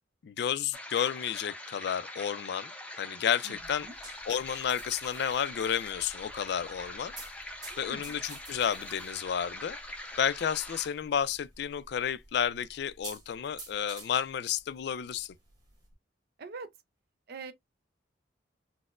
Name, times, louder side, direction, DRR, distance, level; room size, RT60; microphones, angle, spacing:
voice 1, 0.2-2.7 3.0-3.9 4.3-7.1 7.8-9.8 10.2-15.3, left 8 dB, 65° left, 0.3 m, -31 dB
sound 1, 0.7-10.9, left 1 dB, 5° left, 0.5 m, -43 dB
sound 2, 3.5-15.9, right 2 dB, 20° right, 1.2 m, -51 dB
voice 2, 7.7-8.2 16.4-16.7 17.3-17.5, right 4 dB, 55° right, 0.5 m, -43 dB
4.1 x 2.0 x 2.3 m
head